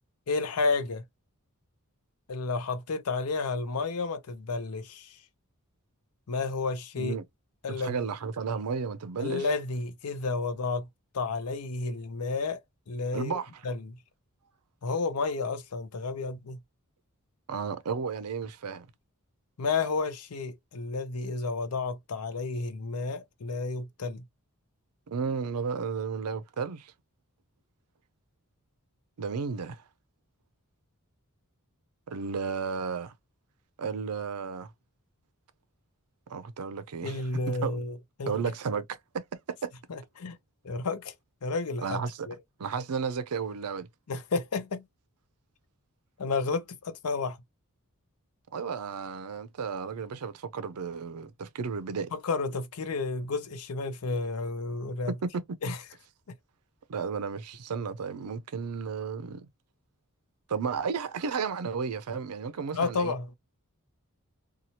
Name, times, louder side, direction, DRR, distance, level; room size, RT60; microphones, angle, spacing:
voice 1, 0.3-1.0 2.3-5.1 6.3-7.2 7.6-8.0 9.2-10.9 11.1-12.6 12.9-13.3 13.6-13.9 14.8-16.6 19.6-24.2 37.0-38.4 39.9-40.4 40.6-41.1 41.4-42.4 44.1-44.8 46.2-47.4 52.1-55.1 55.6-55.8 62.7-63.4, left 3 dB, 80° left, 0.6 m, -31 dB
voice 2, 7.7-9.5 13.1-13.6 17.5-18.9 25.1-26.9 29.2-29.8 32.1-33.1 33.8-34.7 36.3-37.2 37.5-37.8 38.3-39.2 39.6-39.7 41.8-42.3 42.6-43.9 48.5-52.1 55.2-55.4 56.9-59.5 60.5-63.2, right 5 dB, 85° right, 0.5 m, -33 dB
2.8 x 2.3 x 2.8 m
head